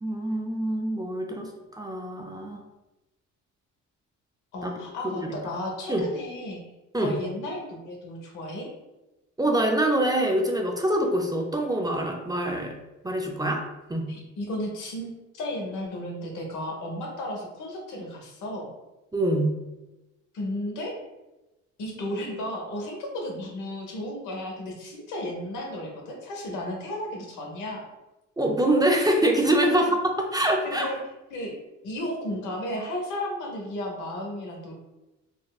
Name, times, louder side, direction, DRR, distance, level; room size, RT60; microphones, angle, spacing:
voice 1, 0.0-1.5 1.7-2.6 4.6-4.7 5.0-5.3 5.9-6.0 6.9-7.2 9.4-12.8 13.0-13.6 13.9-14.1 19.1-19.6 28.4-29.9 30.2-30.9, right 1 dB, 15° right, 1 dB, 0.4 m, -25 dB
voice 2, 4.5-6.6 7.0-8.7 14.1-18.7 20.3-20.9 21.8-27.8 29.7-29.8 30.6-31.0 31.3-31.5 31.8-34.7, left 1 dB, 90° left, 0 dB, 0.9 m, -34 dB
4.2 x 2.1 x 2.3 m, 1.0 s
cardioid pair, 90°, 30 cm